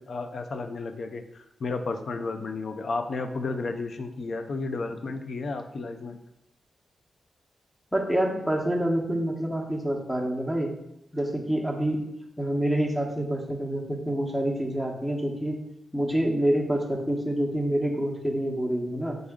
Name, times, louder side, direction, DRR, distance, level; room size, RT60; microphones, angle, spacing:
voice 1, 0.0-6.2, left 3 dB, 65° left, 8 dB, 0.4 m, -32 dB
voice 2, 7.9-10.7 11.1-12.0 12.4-15.6 15.9-19.2, right 1 dB, 5° left, 1 dB, 1.0 m, -27 dB
3.8 x 3.5 x 3.6 m, 0.83 s
cardioid pair, 50°, 0 cm